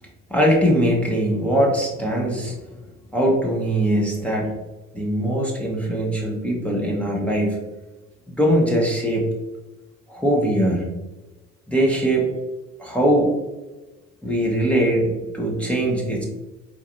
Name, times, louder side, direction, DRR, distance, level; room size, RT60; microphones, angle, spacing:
voice 1, 0.3-2.6 3.1-4.5 4.9-7.6 8.3-9.3 10.1-10.8 11.7-12.3 12.8-13.3 14.2-16.3, right 1 dB, 5° left, -3 dB, 1.3 m, -21 dB
4.5 x 3.4 x 2.7 m, 1.1 s
hypercardioid pair, 55°, 37 cm